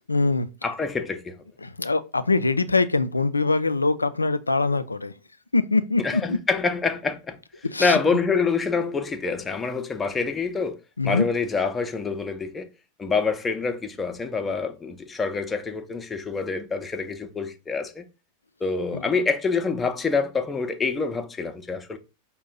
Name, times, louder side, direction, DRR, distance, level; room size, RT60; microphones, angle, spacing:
voice 1, 0.1-0.5 1.6-5.1 5.5-6.4 7.7-8.0 11.0-11.2, left 3 dB, 80° left, 0.3 m, -23 dB
voice 2, 0.6-1.4 6.0-7.4 7.8-10.8 11.0-12.7 13.0-18.0 18.6-22.0, left 4 dB, 15° left, 0.5 m, -26 dB
5.4 x 2.2 x 3.8 m
figure-of-eight pair, 90°, 0 cm